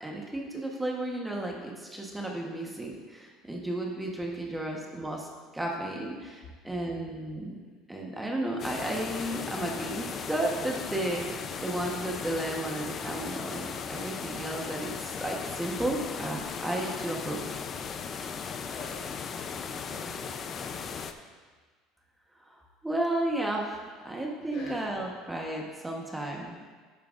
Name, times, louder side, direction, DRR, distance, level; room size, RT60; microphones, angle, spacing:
voice 1, 0.0-5.3 5.5-7.5 7.9-17.4 22.4-23.8 24.0-26.7, right 1 dB, 10° right, -1 dB, 1.2 m, -33 dB
sound 1, 8.6-21.1, left 6 dB, 35° left, 0.6 m, -37 dB
voice 2, 19.2-20.8 24.5-24.8, left 3 dB, 65° left, -3 dB, 2.8 m, -46 dB
11.0 x 9.1 x 2.6 m, 1.5 s
supercardioid pair, 115°, 0 cm